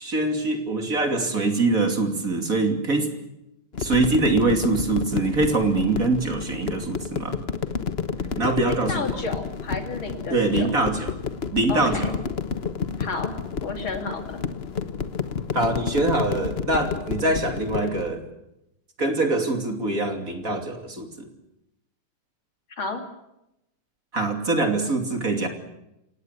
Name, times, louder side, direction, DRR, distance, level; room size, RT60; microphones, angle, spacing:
voice 1, 0.0-3.1 3.8-7.4 8.4-9.2 10.3-11.1 11.5-12.1 15.5-18.2 19.0-21.3 24.1-25.5, right 2 dB, 40° right, 5 dB, 3.3 m, -24 dB
sound 1, 3.7-18.1, left 6 dB, 35° left, 1.1 m, -30 dB
voice 2, 8.7-10.7 11.7-12.2 13.0-13.4 13.6-14.4 22.8-23.0, left 3 dB, 70° left, 5 dB, 3.6 m, -31 dB
27.5 x 18.0 x 8.2 m, 0.87 s
omnidirectional pair, 2.3 m